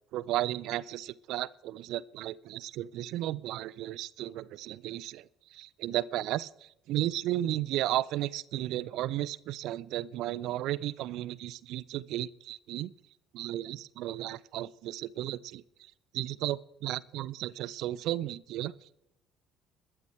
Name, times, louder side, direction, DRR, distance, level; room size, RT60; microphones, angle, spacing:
voice 1, 0.1-12.9 13.3-18.9, right 14 dB, 60° right, 23 dB, 0.4 m, -34 dB
21.5 x 12.0 x 3.3 m, 0.84 s
figure-of-eight pair, 50°, 0 cm